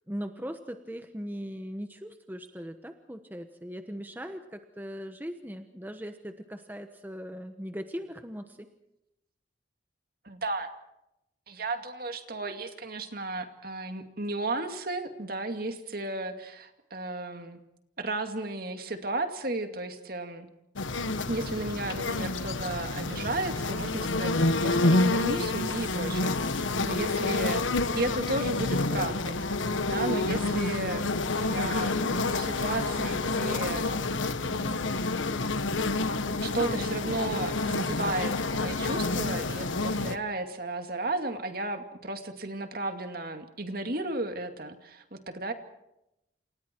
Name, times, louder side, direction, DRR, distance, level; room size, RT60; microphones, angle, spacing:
voice 1, 0.1-8.7, equal, 10° right, 6 dB, 1.1 m, -39 dB
voice 2, 10.2-10.7 11.5-17.6 18.0-20.5 21.3-27.6 28.0-29.4 29.8-31.1 31.4-33.9 34.4-35.0 36.4-45.5, right 2 dB, 50° right, 6 dB, 2.4 m, -34 dB
sound 1, 20.8-40.2, left 2 dB, 85° left, 1.3 m, -28 dB
28.5 x 28.5 x 4.6 m, 0.86 s
head